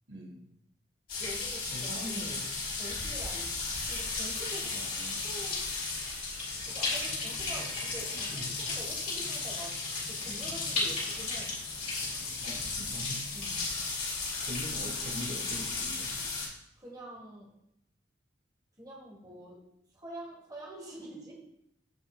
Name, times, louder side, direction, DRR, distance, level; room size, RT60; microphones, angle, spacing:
voice 1, 0.1-0.4 1.7-2.5 4.7-5.3 6.6-6.7 8.3-8.5 12.4-13.2 14.4-16.2, equal, 85° right, -3 dB, 3.3 m, -42 dB
sound 1, 1.1-16.5, left 3 dB, 45° left, 3.3 m, -34 dB
voice 2, 1.2-1.7 2.8-4.8 5.2-5.6 6.7-9.8 10.1-11.5 13.3-13.7 16.8-17.5 18.8-19.6 19.9-21.3, right 1 dB, 20° right, -2 dB, 1.5 m, -46 dB
15.5 x 5.6 x 2.5 m, 0.79 s
head